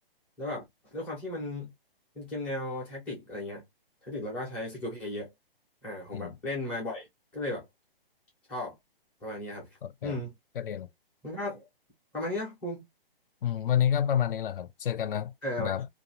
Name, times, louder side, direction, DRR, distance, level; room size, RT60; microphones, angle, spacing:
voice 1, 0.9-1.7 2.2-3.6 4.0-5.3 5.8-7.1 7.3-7.7 8.5-8.7 9.2-9.7 10.0-10.3 11.2-11.7 12.1-12.9 15.4-15.7, left 1 dB, 5° left, 0.5 m, -35 dB
voice 2, 9.8-10.2 10.6-10.9 13.4-15.9, left 9 dB, 65° left, 0.5 m, -29 dB
2.6 x 2.3 x 2.7 m
hypercardioid pair, 155°, 30 cm